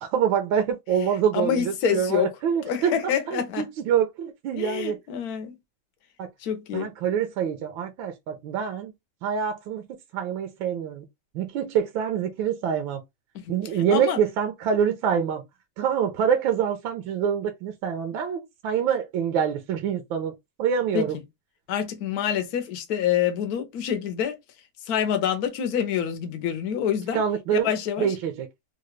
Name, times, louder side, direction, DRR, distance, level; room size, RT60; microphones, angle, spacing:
voice 1, 0.0-2.9 3.3-5.0 6.2-6.3 6.7-8.9 9.2-9.8 10.1-11.0 11.3-13.0 13.5-15.4 15.8-20.3 20.6-21.2 27.1-27.7 28.0-28.5, right 8 dB, 75° right, 1.3 m, -25 dB
voice 2, 1.3-2.3 2.6-3.7 4.6-5.6 6.4-6.9 13.4-13.5 13.9-14.2 20.9-21.1 21.7-24.4 24.9-27.2 27.5-28.1, left 9 dB, 65° left, 1.0 m, -26 dB
3.8 x 2.3 x 3.1 m
omnidirectional pair, 2.4 m